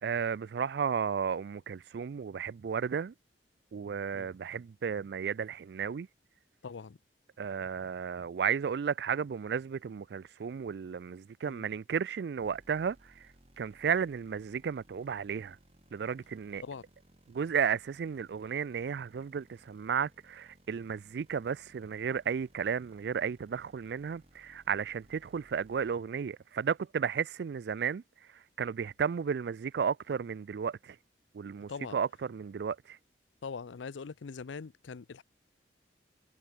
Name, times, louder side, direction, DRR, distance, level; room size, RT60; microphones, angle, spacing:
voice 1, 0.0-3.1 3.7-6.1 7.4-13.0 13.6-15.6 15.9-16.6 17.3-28.0 28.6-31.0 31.3-33.0, right 7 dB, 60° right, 0.3 m, -33 dB
voice 2, 6.6-7.0 11.4-11.6 16.6-16.8 31.7-32.0 33.4-35.2, left 5 dB, 80° left, 0.5 m, -42 dB
sound 1, 12.4-25.9, right 1 dB, 35° right, 2.2 m, -63 dB
head